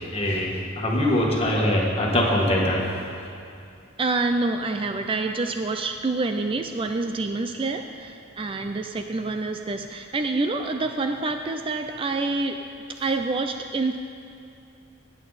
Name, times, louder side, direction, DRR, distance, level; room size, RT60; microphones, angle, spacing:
voice 1, 0.1-2.8, left 1 dB, 30° left, -2 dB, 1.7 m, -22 dB
voice 2, 4.0-12.6 13.0-14.0, right 3 dB, 30° right, 6 dB, 0.4 m, -27 dB
17.0 x 8.7 x 4.1 m, 2.6 s
head